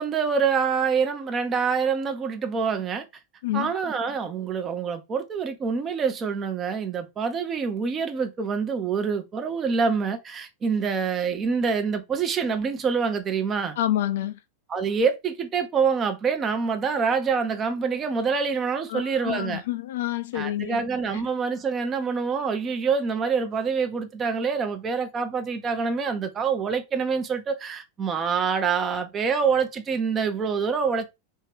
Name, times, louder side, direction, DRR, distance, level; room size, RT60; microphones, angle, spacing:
voice 1, 0.0-3.1 3.5-13.8 14.7-19.6 20.3-31.1, right 5 dB, 25° right, 0.7 m, -26 dB
voice 2, 3.4-3.7 13.8-14.4 18.9-20.8 21.1-21.2, left 13 dB, 55° left, 0.3 m, -28 dB
3.3 x 2.8 x 3.1 m
figure-of-eight pair, 90°, 0 cm